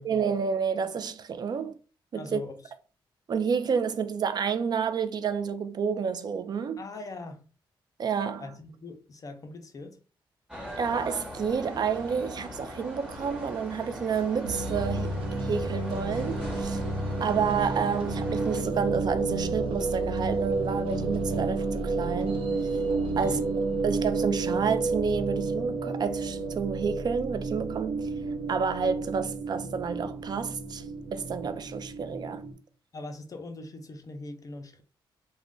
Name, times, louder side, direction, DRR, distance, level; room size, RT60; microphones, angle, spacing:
voice 1, 0.0-1.8 2.1-2.4 3.3-6.8 8.0-8.5 10.8-16.8 17.2-22.5 23.2-23.4 23.8-28.1 28.5-30.8 31.1-32.5, right 6 dB, 50° right, 0.4 m, -29 dB
voice 2, 2.2-2.6 6.8-7.4 8.4-10.0 23.1-23.5 32.9-34.8, left 2 dB, 40° left, 0.5 m, -41 dB
sound 1, 10.5-18.6, equal, 10° right, 1.0 m, -41 dB
sound 2, 14.4-32.5, right 3 dB, 85° right, 0.7 m, -31 dB
2.4 x 2.1 x 3.6 m
cardioid pair, 100°, 9 cm